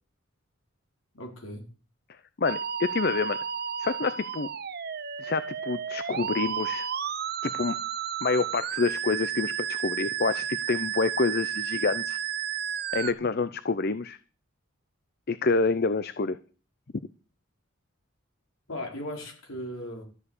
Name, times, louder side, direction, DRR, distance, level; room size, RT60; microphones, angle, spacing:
voice 1, 1.1-1.6 18.7-20.1, left 1 dB, 85° left, 4.7 m, -37 dB
voice 2, 2.4-3.4 3.8-4.5 5.2-6.9 7.4-7.8 8.2-12.2 12.9-14.2 15.3-16.4, left 4 dB, 50° left, 0.6 m, -27 dB
Musical instrument, 2.4-13.1, right 9 dB, 50° right, 0.7 m, -32 dB
13.5 x 7.2 x 8.3 m
head